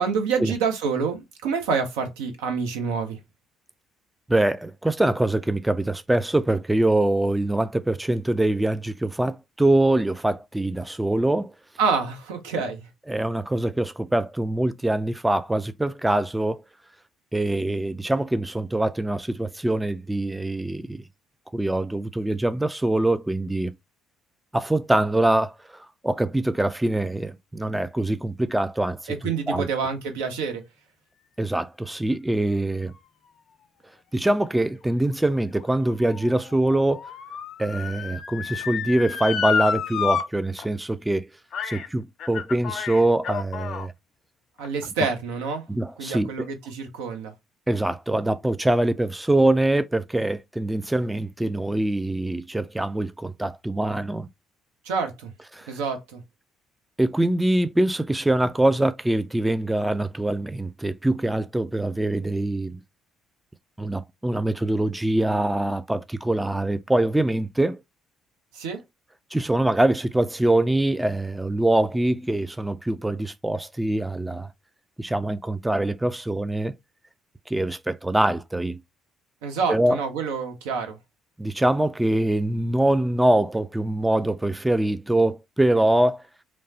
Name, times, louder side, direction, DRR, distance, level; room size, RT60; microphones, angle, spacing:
voice 1, 0.0-3.2 11.8-12.8 29.1-30.6 44.6-45.6 46.0-47.3 54.8-55.3 55.7-56.2 68.5-68.8 79.4-81.0, right 5 dB, 80° right, 0.6 m, -27 dB
voice 2, 4.3-11.5 13.1-16.6 17.3-21.0 21.5-23.7 24.5-29.1 29.5-29.7 31.4-32.9 34.1-37.0 37.6-41.3 41.6-43.9 45.0-45.1 45.7-46.5 47.7-54.3 55.5-55.7 57.0-62.8 63.8-67.8 69.3-74.5 75.0-76.7 77.5-78.8 79.7-80.0 81.4-86.2, right 1 dB, 10° right, 0.3 m, -24 dB
Motor vehicle (road) / Siren, 35.0-40.2 40.6-40.7 41.5-41.9 42.2-43.9 44.6-44.7, left 7 dB, 60° left, 0.4 m, -30 dB
3.1 x 2.0 x 2.7 m
hypercardioid pair, 55°, 0 cm